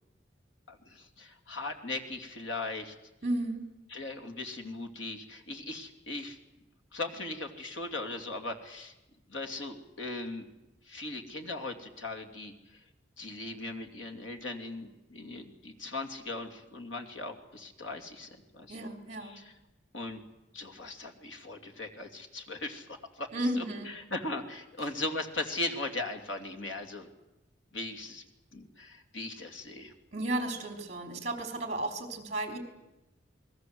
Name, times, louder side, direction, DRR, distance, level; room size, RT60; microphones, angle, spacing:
voice 1, 0.7-2.9 3.9-6.4 6.9-8.9 9.3-10.5 10.9-12.8 13.2-18.9 19.2-19.5 19.9-20.2 20.5-23.3 23.6-27.1 27.7-28.2 28.5-29.9, left 2 dB, 85° left, 5 dB, 3.0 m, -39 dB
voice 2, 3.2-3.7 18.7-19.4 23.3-23.9 30.1-32.6, right 1 dB, 35° right, 6 dB, 3.9 m, -33 dB
28.5 x 21.0 x 8.0 m, 0.96 s
head